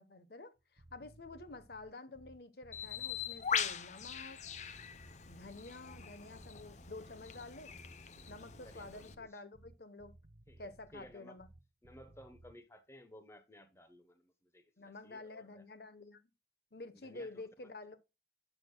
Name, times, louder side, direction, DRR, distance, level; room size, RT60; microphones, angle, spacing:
voice 1, 0.0-4.4 5.3-7.7 8.3-10.1 10.6-11.5 14.8-16.2 16.7-18.0, left 2 dB, 60° left, 1.0 m, -50 dB
sound 1, 0.6-12.6, right 2 dB, 55° right, 0.7 m, -60 dB
Bird, 2.7-9.1, left 7 dB, 40° left, 0.7 m, -41 dB
voice 2, 8.5-9.4 10.5-11.4 11.8-15.7 16.9-17.7, equal, 15° left, 0.9 m, -57 dB
10.5 x 6.8 x 2.2 m
head